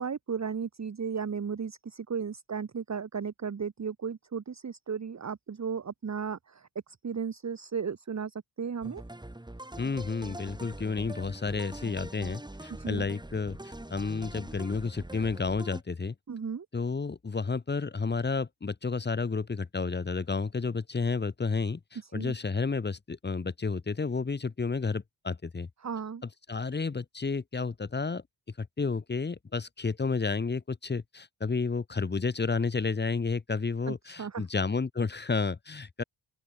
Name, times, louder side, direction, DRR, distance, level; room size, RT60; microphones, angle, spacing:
voice 1, 0.0-9.0 12.8-13.0 16.3-16.7 22.1-22.3 25.8-26.2 33.8-34.4, right 6 dB, 40° right, 1.3 m, -35 dB
sound 1, 8.8-15.8, right 1 dB, 10° right, 3.1 m, -43 dB
voice 2, 9.8-16.1 16.7-25.7 26.5-28.2 28.6-36.0, left 4 dB, 25° left, 0.8 m, -31 dB
open air
wide cardioid pair, 110°, 44 cm